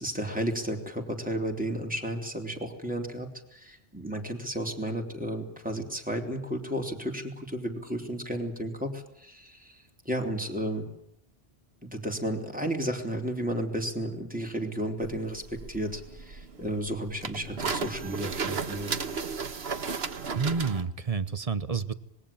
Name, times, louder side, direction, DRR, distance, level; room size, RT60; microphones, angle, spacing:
voice 1, 0.0-10.9 11.8-18.9, right 1 dB, 5° right, 2 dB, 3.9 m, -33 dB
sound 1, 15.0-20.8, right 5 dB, 70° right, 1.5 m, -34 dB
voice 2, 20.3-21.9, right 5 dB, 35° right, 14 dB, 1.1 m, -29 dB
26.0 x 21.5 x 8.8 m, 0.76 s
omnidirectional pair, 1.1 m